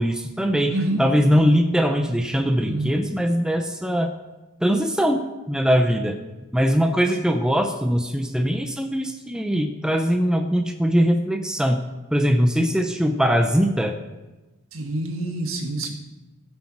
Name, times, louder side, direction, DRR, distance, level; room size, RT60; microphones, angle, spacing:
voice 1, 0.0-0.7 1.0-4.1 4.6-5.2 5.5-6.2 6.5-11.8 12.1-13.9, equal, 5° right, 5 dB, 0.6 m, -21 dB
voice 2, 0.7-1.0 1.3-1.6 2.7-2.9 12.5-12.7 14.7-15.9, right 2 dB, 65° right, 3 dB, 1.7 m, -27 dB
15.0 x 7.9 x 4.3 m, 1.1 s
head